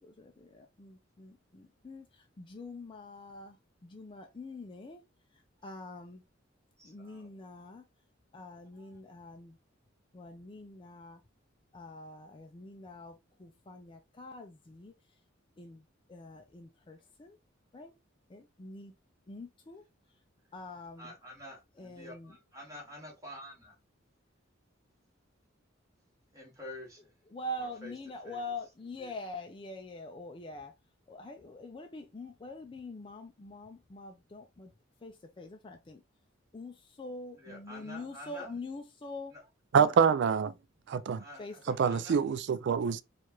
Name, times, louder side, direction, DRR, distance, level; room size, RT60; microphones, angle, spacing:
voice 1, 0.0-3.6 3.8-5.0 5.6-6.2 6.8-7.8 8.3-9.6 10.1-11.2 11.7-14.9 15.6-17.4 17.7-17.9 18.3-18.9 19.3-19.8 20.5-21.1 21.8-22.3 27.3-30.7 31.1-34.7 35.0-36.0 36.5-39.3 39.7-40.0 41.4-41.6, left 2 dB, 25° left, 0.4 m, -45 dB
voice 2, 6.8-7.3 8.7-9.0 21.0-23.7 26.3-27.1 27.5-27.9 28.2-28.5 29.0-29.2 37.4-38.5 39.3-39.5 41.2-42.2, left 1 dB, 20° right, 1.8 m, -48 dB
voice 3, 39.7-40.5 40.9-41.2 41.7-43.0, right 6 dB, 60° right, 0.3 m, -26 dB
4.5 x 2.4 x 3.0 m
head